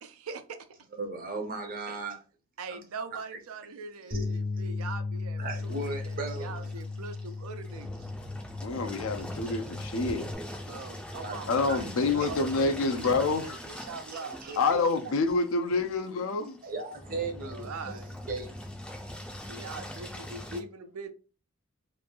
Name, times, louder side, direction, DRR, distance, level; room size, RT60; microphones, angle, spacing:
voice 1, 0.0-0.7 1.9-2.0 2.6-8.0 10.6-15.2 17.4-18.1 19.4-21.1, right 4 dB, 85° right, 0.4 m, -42 dB
voice 2, 1.0-2.2 2.7-2.8 3.1-3.2 4.1-4.3 5.4-6.7 11.2-11.8 12.2-12.3 14.1-14.6 16.6-18.5, right 3 dB, 40° right, 0.6 m, -37 dB
sound 1, 4.1-10.4, left 3 dB, 90° left, 1.1 m, -36 dB
Engine, 5.5-20.6, left 1 dB, 5° left, 0.4 m, -42 dB
voice 3, 8.6-10.3 11.5-13.6 14.6-16.6, left 3 dB, 70° left, 0.4 m, -27 dB
3.0 x 2.5 x 2.3 m
head